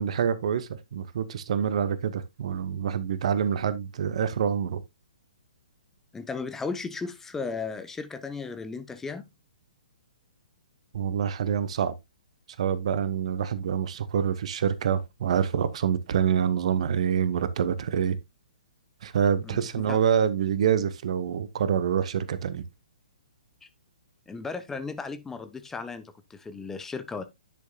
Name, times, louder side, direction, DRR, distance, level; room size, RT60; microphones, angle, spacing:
voice 1, 0.0-4.8 10.9-12.0 12.6-18.2 19.0-22.6, right 8 dB, 50° right, 0.9 m, -26 dB
voice 2, 6.1-9.2 19.4-20.0 24.3-27.2, left 4 dB, 10° left, 0.8 m, -35 dB
10.5 x 6.5 x 2.3 m
figure-of-eight pair, 125°, 4 cm